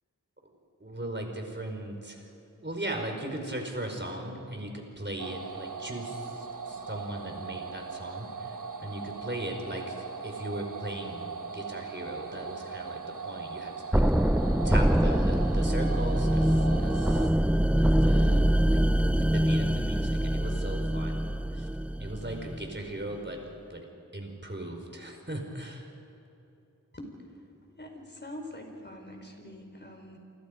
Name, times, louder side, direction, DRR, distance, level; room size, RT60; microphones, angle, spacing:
voice 1, 0.8-2.3 2.6-14.0 14.6-17.3 17.8-21.2 21.5-21.7 22.0-23.4 23.7-23.9 24.1-25.9, right 1 dB, 35° right, 3 dB, 4.8 m, -38 dB
sound 1, 5.2-17.3, right 5 dB, 70° right, 1.3 m, -39 dB
sound 2, 13.9-22.8, right 1 dB, 5° right, 0.6 m, -24 dB
voice 2, 27.8-30.2, left 1 dB, 35° left, 3 dB, 4.9 m, -44 dB
28.0 x 25.0 x 5.3 m, 2.9 s
wide cardioid pair, 45°, 32 cm